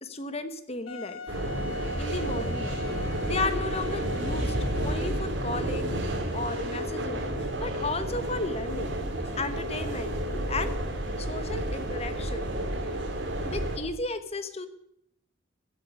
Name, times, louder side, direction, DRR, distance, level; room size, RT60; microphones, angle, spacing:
voice 1, 0.0-1.2 2.0-2.8 3.2-8.9 9.4-10.1 10.5-10.8 11.2-12.5 13.4-14.7, left 3 dB, 30° left, 10 dB, 1.0 m, -34 dB
Wind instrument woodwind instrument, 0.9-5.4, left 3 dB, 85° left, 1.6 m, -40 dB
sound 1, 1.3-13.8, right 1 dB, 65° right, 2.9 m, -31 dB
15.0 x 8.4 x 8.4 m, 0.74 s
head